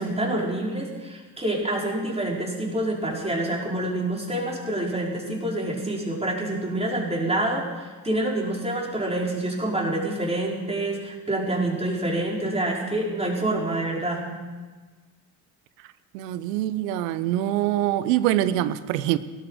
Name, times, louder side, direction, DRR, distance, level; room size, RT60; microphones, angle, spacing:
voice 1, 0.0-14.3, right 1 dB, 15° right, -3 dB, 5.3 m, -27 dB
voice 2, 16.1-19.2, right 13 dB, 85° right, 15 dB, 0.9 m, -24 dB
17.5 x 13.0 x 5.1 m, 1.3 s
hypercardioid pair, 65°, 48 cm